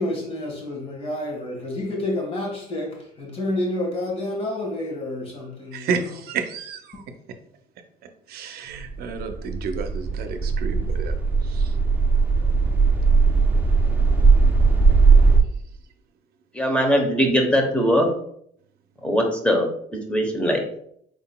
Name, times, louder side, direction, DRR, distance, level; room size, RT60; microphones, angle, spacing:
voice 1, 0.0-5.9, left 1 dB, 35° left, 1.5 m, -29 dB
voice 2, 5.7-7.0 8.3-11.2 11.4-11.8, right 5 dB, 65° right, 0.6 m, -31 dB
sound 1, 8.8-15.4, right 4 dB, 10° right, 0.6 m, -18 dB
voice 3, 16.5-18.1 19.0-19.7 20.1-20.6, equal, 5° left, 0.9 m, -20 dB
4.7 x 3.8 x 2.2 m
cardioid pair, 120°, 17 cm